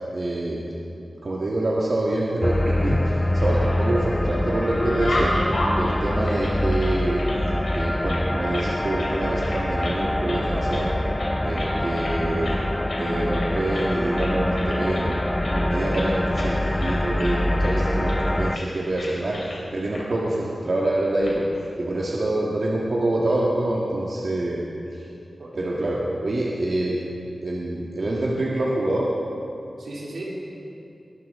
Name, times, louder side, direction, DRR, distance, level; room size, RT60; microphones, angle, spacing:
voice 1, 0.1-0.7 1.1-5.3 5.8-7.2 7.7-10.9 11.4-12.6 13.0-15.2 15.5-19.4 19.7-21.5 21.8-24.6 24.9-25.0 25.5-27.0 27.4-29.1, right 1 dB, 55° right, -5 dB, 1.7 m, -26 dB
sound 1, 2.4-18.6, left 1 dB, 15° left, 0.5 m, -25 dB
sound 2, 3.2-4.1 4.4-7.4 7.6-8.7 9.0-9.2 9.4-10.0 10.3-10.9 11.2-12.2 12.4-12.6 12.9-13.0 13.3-13.9 14.2-16.1 16.3-16.5 16.8-17.7 18.1-18.3 18.5-18.7 19.0-19.6 19.9-20.0 21.0-21.3, left 1 dB, 70° left, 3.7 m, -32 dB
voice 2, 25.4-26.0 29.8-30.2, right 2 dB, 85° right, -6 dB, 3.5 m, -37 dB
21.5 x 12.0 x 3.7 m, 2.7 s
wide cardioid pair, 75°, 0 cm